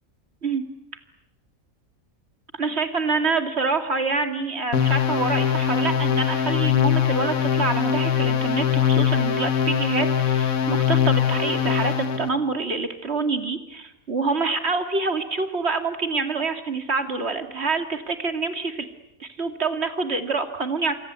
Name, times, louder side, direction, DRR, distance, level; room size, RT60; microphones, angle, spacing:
voice 1, 2.6-18.9 19.2-20.9, right 4 dB, 50° right, 7 dB, 2.7 m, -26 dB
sound 1, 4.7-12.3, left 8 dB, 80° left, 1.9 m, -22 dB
28.0 x 24.5 x 8.2 m, 0.86 s
omnidirectional pair, 1.4 m